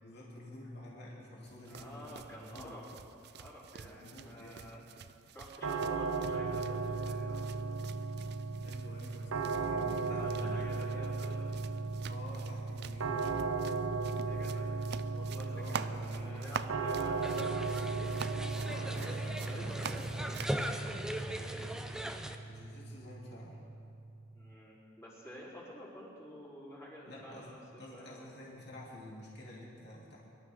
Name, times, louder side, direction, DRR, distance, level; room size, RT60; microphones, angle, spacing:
voice 1, 0.0-2.7 3.8-4.7 8.6-10.7 12.1-13.2 15.5-16.7 18.5-20.6 22.4-23.6 27.0-30.2, left 1 dB, 55° left, -5 dB, 2.9 m, -49 dB
sound 1, 1.4-20.6, right 6 dB, 55° right, 0.4 m, -47 dB
voice 2, 1.7-2.9 3.3-4.8 5.3-7.5 10.1-11.6 13.3-13.4 14.2-14.7 15.1-17.7 18.6-20.0 21.4-21.7 24.3-28.3, equal, 15° left, -7 dB, 3.6 m, -50 dB
sound 2, 5.6-24.5, right 4 dB, 90° right, 0.7 m, -36 dB
sound 3, 17.2-22.4, equal, 5° right, 0.6 m, -39 dB
24.0 x 12.5 x 3.7 m, 2.5 s
head